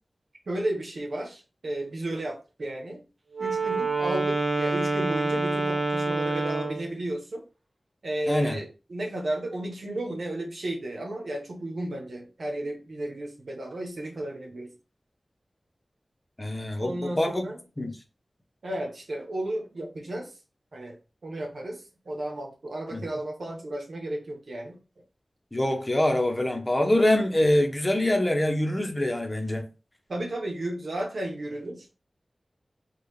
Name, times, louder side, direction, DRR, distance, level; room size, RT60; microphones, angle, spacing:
voice 1, 0.5-3.0 3.4-7.5 8.0-14.7 16.8-17.6 18.6-20.3 20.7-21.0 21.2-24.8 30.1-31.9, right 1 dB, 80° right, 1.1 m, -33 dB
Wind instrument woodwind instrument, 3.3-6.9, right 3 dB, 45° right, 0.8 m, -27 dB
voice 2, 8.3-8.6 16.4-17.4 17.8-17.9 22.9-23.0 25.5-29.6, left 1 dB, 25° left, 0.8 m, -24 dB
3.8 x 2.4 x 3.3 m
wide cardioid pair, 60°, 0 cm